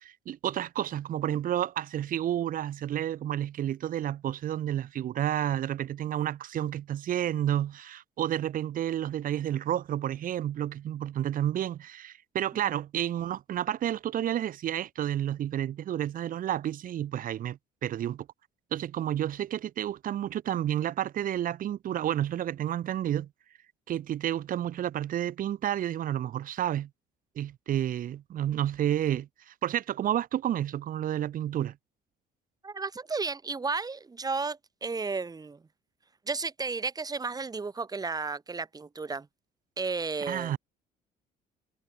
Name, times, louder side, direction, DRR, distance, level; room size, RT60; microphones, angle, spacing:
voice 1, 0.0-18.3 18.7-23.3 23.9-26.9 27.3-31.7 40.3-40.6, right 11 dB, 55° right, 1.3 m, -30 dB
voice 2, 32.6-35.6 36.3-39.3 39.8-40.6, right 4 dB, 20° right, 2.4 m, -33 dB
cardioid pair, 110°, 17 cm